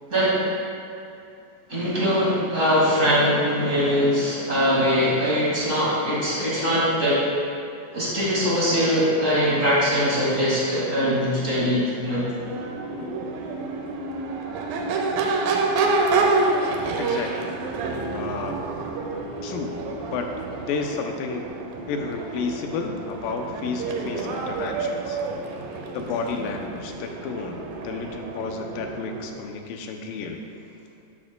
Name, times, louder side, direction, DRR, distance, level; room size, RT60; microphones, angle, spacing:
voice 1, 1.7-7.2 7.9-12.3, equal, 30° right, -8 dB, 1.7 m, -22 dB
Crowd / Race car auto racing / Accelerating revving vroom, 12.3-29.4, right 3 dB, 80° right, 2.4 m, -28 dB
voice 2, 17.0-17.5 18.1-18.6 19.4-19.8 20.1-20.3 20.7-21.4 21.9-25.2 25.9-30.4, left 5 dB, 80° left, 4 dB, 2.3 m, -31 dB
12.0 x 8.6 x 2.2 m, 2.6 s
omnidirectional pair, 4.1 m